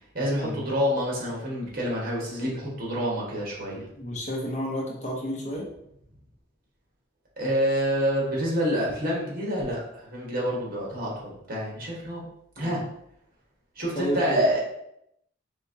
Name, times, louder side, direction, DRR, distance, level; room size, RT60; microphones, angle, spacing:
voice 1, 0.1-3.9 7.4-12.3 12.6-12.8 13.7-14.6, equal, 50° right, -4 dB, 1.4 m, -27 dB
voice 2, 3.7-5.7 12.6-12.8 14.0-14.4, equal, 40° left, -2 dB, 0.9 m, -31 dB
4.5 x 3.4 x 2.8 m, 0.76 s
head